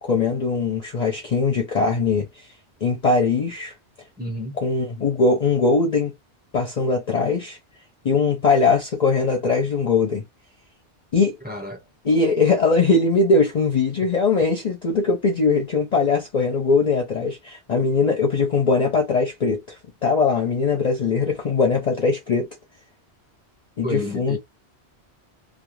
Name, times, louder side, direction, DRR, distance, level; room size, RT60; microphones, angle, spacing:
voice 1, 0.0-2.4 2.8-3.7 4.6-6.1 6.5-7.6 8.0-10.2 11.1-11.4 12.0-22.5 23.8-24.4, left 4 dB, 45° left, 0.6 m, -21 dB
voice 2, 4.2-4.6 11.4-11.8 23.8-24.4, left 1 dB, 10° right, 1.0 m, -30 dB
2.3 x 2.2 x 3.0 m
omnidirectional pair, 1.1 m